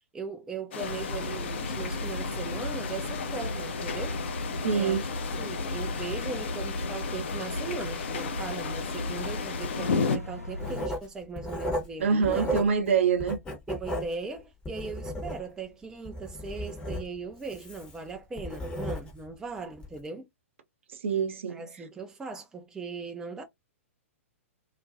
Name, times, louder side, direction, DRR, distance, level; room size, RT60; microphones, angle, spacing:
voice 1, 0.1-4.2 4.7-5.1 5.4-12.5 13.7-20.3 21.5-23.4, right 4 dB, 10° right, 0.3 m, -39 dB
sound 1, 0.7-10.2, left 5 dB, 55° left, 0.5 m, -34 dB
sound 2, 0.8-10.9, left 1 dB, 90° left, 0.8 m, -36 dB
voice 2, 4.6-5.0 12.0-13.4 21.0-21.6, right 6 dB, 60° right, 0.6 m, -25 dB
Writing, 10.6-12.9 13.2-15.7 16.0-19.3 19.8-20.0, equal, 10° left, 0.7 m, -35 dB
2.4 x 2.1 x 2.4 m
figure-of-eight pair, 110°, 8 cm